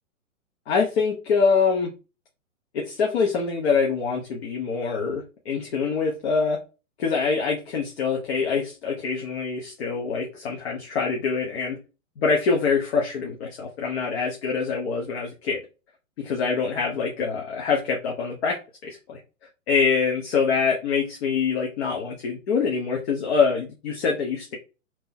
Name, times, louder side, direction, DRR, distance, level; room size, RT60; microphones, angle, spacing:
voice 1, 0.7-1.9 2.7-6.6 7.0-11.8 12.2-15.6 16.2-18.6 18.8-19.2 19.7-24.6, left 5 dB, 50° left, 0 dB, 1.0 m, -25 dB
3.6 x 3.0 x 2.8 m, 0.31 s
hypercardioid pair, 120°, 41 cm